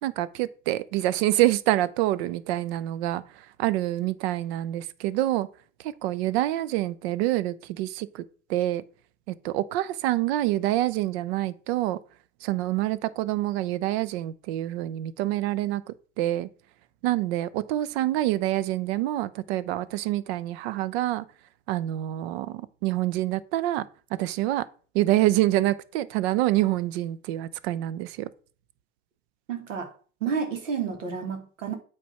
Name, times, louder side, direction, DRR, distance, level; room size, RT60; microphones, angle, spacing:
voice 1, 0.0-3.2 3.6-5.5 5.8-8.2 8.5-8.8 9.3-12.0 12.4-15.8 16.2-16.5 17.0-21.2 21.7-23.8 24.1-24.7 24.9-28.3, right 15 dB, 55° right, 0.7 m, -26 dB
voice 2, 29.5-29.9 30.2-31.8, right 6 dB, 80° right, 2.0 m, -30 dB
8.4 x 3.5 x 5.6 m
hypercardioid pair, 95°, 37 cm